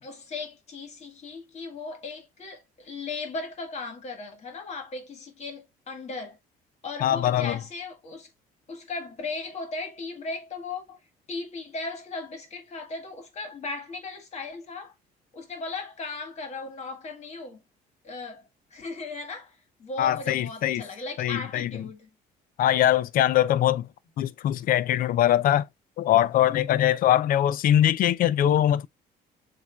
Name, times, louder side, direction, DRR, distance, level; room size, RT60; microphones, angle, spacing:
voice 1, 0.0-6.4 6.8-8.3 8.7-11.0 11.3-14.9 15.3-17.6 18.0-18.4 18.7-22.1, left 3 dB, 40° left, 1.7 m, -37 dB
voice 2, 7.0-7.6 20.0-20.8 21.2-21.9 22.6-23.9 24.2-25.7 26.0-28.9, left 12 dB, 55° left, 0.4 m, -22 dB
7.2 x 2.6 x 2.2 m
cardioid pair, 110°, 17 cm